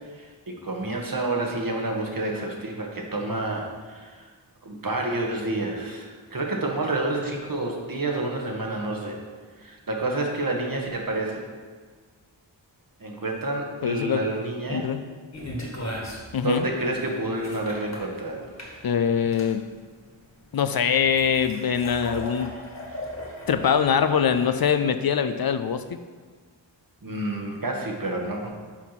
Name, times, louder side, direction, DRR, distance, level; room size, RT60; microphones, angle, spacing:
voice 1, 0.1-4.3 4.6-9.2 9.6-11.5 13.0-14.9 16.4-18.5 27.0-28.5, right 2 dB, 45° right, 1 dB, 1.4 m, -29 dB
voice 2, 13.8-14.2 14.7-15.0 16.3-16.7 18.8-19.6 20.5-22.5 23.5-26.0, left 7 dB, 55° left, 10 dB, 0.5 m, -23 dB
sound 1, 15.3-24.7, equal, 35° left, 1.7 m, -38 dB
6.0 x 4.4 x 5.7 m, 1.5 s
cardioid pair, 45°, 46 cm